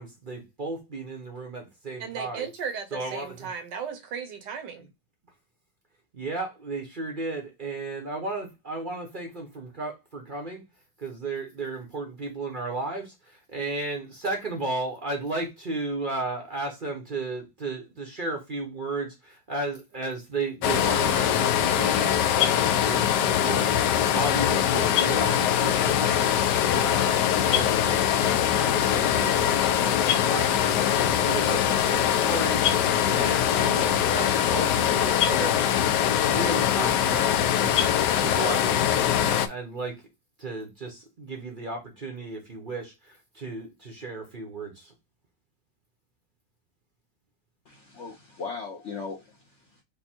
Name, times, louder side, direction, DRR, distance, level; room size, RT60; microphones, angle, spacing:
voice 1, 0.0-2.5 2.9-3.5 6.1-10.6 11.0-26.3 26.7-35.9 36.2-40.0 40.4-44.9, right 3 dB, 40° right, 0.7 m, -34 dB
voice 2, 2.0-4.9, right 6 dB, 70° right, 1.4 m, -36 dB
sound 1, 20.6-39.5, left 10 dB, 75° left, 1.1 m, -23 dB
voice 3, 47.7-49.8, left 4 dB, 55° left, 0.8 m, -38 dB
5.2 x 2.2 x 4.3 m
omnidirectional pair, 2.0 m